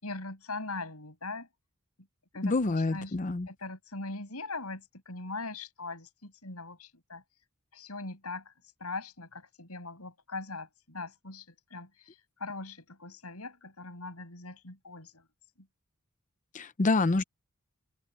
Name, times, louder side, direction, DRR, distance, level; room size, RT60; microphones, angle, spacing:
voice 1, 0.0-1.5 2.3-3.1 3.5-7.2 7.7-8.5 8.8-15.3 15.6-15.7, left 3 dB, 85° left, 6.6 m, -41 dB
voice 2, 2.4-3.5 16.5-17.2, left 3 dB, 35° left, 0.6 m, -27 dB
open air
head